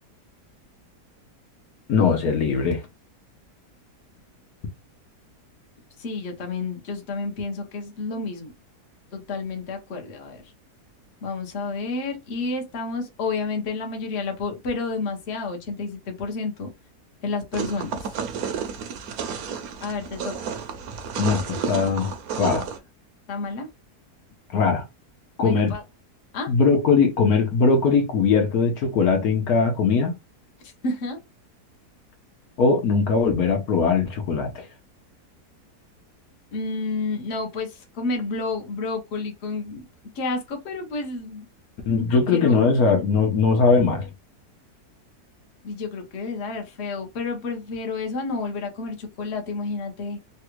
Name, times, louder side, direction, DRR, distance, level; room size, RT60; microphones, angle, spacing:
voice 1, 1.9-2.8 21.2-22.7 24.5-24.8 25.4-25.7 26.5-30.2 32.6-34.7 41.9-44.1, left 5 dB, 70° left, 1.2 m, -20 dB
voice 2, 6.0-8.5 9.1-10.4 11.2-16.7 17.2-18.2 19.8-20.5 23.3-23.7 25.4-25.8 26.3-26.5 30.6-31.2 36.5-39.9 40.1-41.5 42.1-42.6 45.6-50.2, left 3 dB, 50° left, 1.0 m, -30 dB
sound 1, 17.5-22.8, right 6 dB, 70° right, 1.0 m, -31 dB
3.3 x 2.4 x 3.0 m
omnidirectional pair, 1.7 m